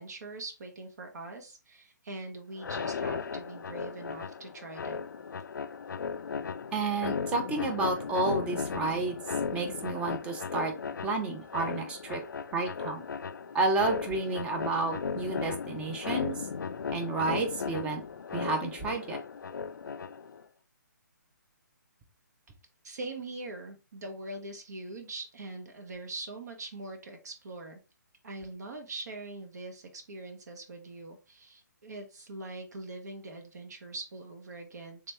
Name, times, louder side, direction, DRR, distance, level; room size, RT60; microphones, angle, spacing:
voice 1, 0.0-5.1 22.8-27.8 28.2-35.1, right 2 dB, 60° right, 4 dB, 1.0 m, -42 dB
sound 1, 2.6-20.4, left 6 dB, 90° left, 0.4 m, -36 dB
voice 2, 6.7-9.2 9.5-10.7 11.0-12.2 12.5-13.0 13.5-16.4 16.9-18.0 18.3-19.2, right 3 dB, 10° right, 5 dB, 0.5 m, -31 dB
3.3 x 2.9 x 3.3 m, 0.31 s
hypercardioid pair, 155°, 10 cm